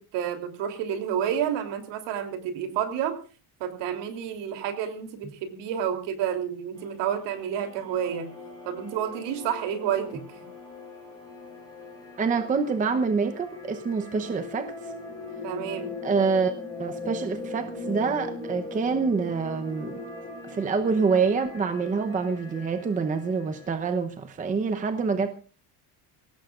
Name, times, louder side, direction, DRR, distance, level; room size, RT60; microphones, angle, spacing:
voice 1, 0.0-3.1 3.6-8.3 8.6-10.4 15.4-15.9, right 9 dB, 65° right, 3.3 m, -30 dB
sound 1, 6.8-23.7, left 3 dB, 10° left, 4.6 m, -40 dB
voice 2, 12.2-14.7 16.0-16.5 16.8-20.0 20.4-25.3, right 5 dB, 15° right, 0.8 m, -26 dB
22.0 x 18.0 x 2.5 m
cardioid pair, 170°, 46 cm